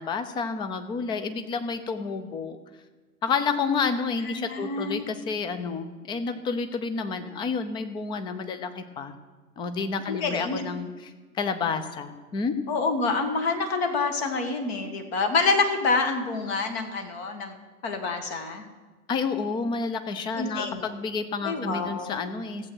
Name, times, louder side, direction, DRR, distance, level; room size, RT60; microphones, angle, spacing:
voice 1, 0.0-2.6 3.2-9.1 9.6-12.6 19.1-22.7, left 5 dB, 10° left, 9 dB, 0.5 m, -30 dB
voice 2, 4.3-5.1 10.1-10.6 12.7-17.6 17.8-18.6 20.4-20.8 21.4-22.1, left 3 dB, 45° left, 6 dB, 1.7 m, -27 dB
14.5 x 7.8 x 6.2 m, 1.3 s
figure-of-eight pair, 105°, 44 cm